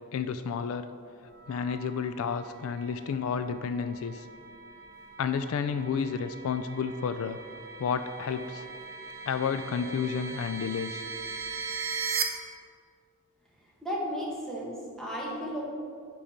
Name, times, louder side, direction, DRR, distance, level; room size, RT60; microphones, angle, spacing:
voice 1, 0.1-0.9 1.5-4.3 5.2-7.4 7.8-8.7 9.3-11.0, left 6 dB, 70° left, 10 dB, 0.3 m, -31 dB
sound 1, 1.3-12.2, right 5 dB, 45° right, 0.7 m, -39 dB
voice 2, 13.8-15.6, equal, ahead, -5 dB, 1.4 m, -34 dB
9.9 x 5.4 x 4.4 m, 2.4 s
head